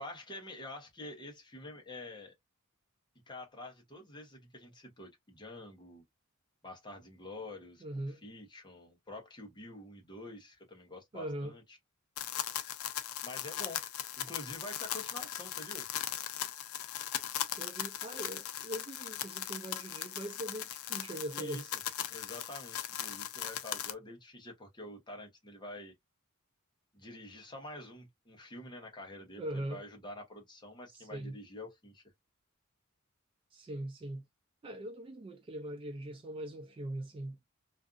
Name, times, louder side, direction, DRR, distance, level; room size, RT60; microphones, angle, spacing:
voice 1, 0.0-2.3 3.3-6.0 6.6-11.8 13.2-13.8 14.2-15.9 21.3-21.6 22.0-25.9 26.9-32.0, left 1 dB, 20° left, 0.8 m, -47 dB
voice 2, 7.8-8.2 11.1-11.5 17.6-21.7 29.4-29.8 30.9-31.4 33.5-34.2 34.6-37.4, right 1 dB, 25° right, 0.3 m, -41 dB
sound 1, 12.2-23.9, left 11 dB, 80° left, 0.4 m, -39 dB
2.5 x 2.4 x 2.3 m
head